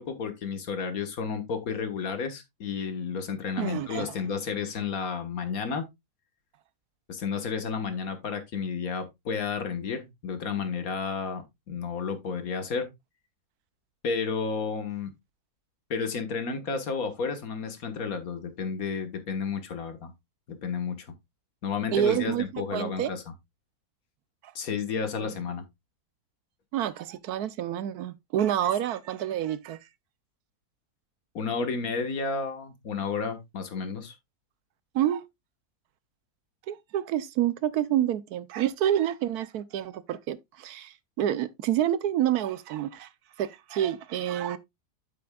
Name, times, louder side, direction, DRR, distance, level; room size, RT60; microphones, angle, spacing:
voice 1, 0.0-5.9 7.1-12.9 14.0-15.1 15.9-20.1 20.6-21.1 21.6-23.3 24.6-25.6 31.3-34.1, left 5 dB, 65° left, 1.8 m, -32 dB
voice 2, 3.6-4.1 21.9-23.1 25.2-25.3 26.7-29.8 34.9-35.2 36.7-43.1 43.4-44.6, right 11 dB, 80° right, 1.2 m, -28 dB
8.6 x 7.8 x 2.3 m
omnidirectional pair, 1.7 m